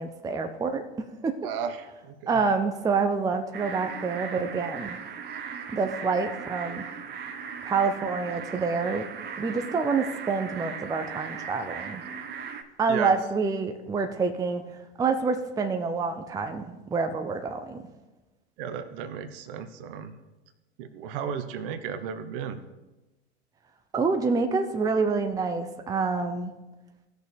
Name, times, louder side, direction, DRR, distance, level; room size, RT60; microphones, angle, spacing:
voice 1, 0.0-1.3 2.3-5.0 5.7-6.8 7.6-9.1 9.4-12.0 12.8-14.6 15.0-17.8 23.9-26.5, right 4 dB, 10° right, 6 dB, 0.6 m, -27 dB
voice 2, 1.4-2.4 12.9-13.2 18.6-20.1 20.8-22.6, right 7 dB, 55° right, 10 dB, 1.0 m, -34 dB
sound 1, 3.5-12.6, right 6 dB, 30° right, 1.0 m, -38 dB
17.0 x 6.4 x 3.4 m, 1.1 s
hypercardioid pair, 95°, 34 cm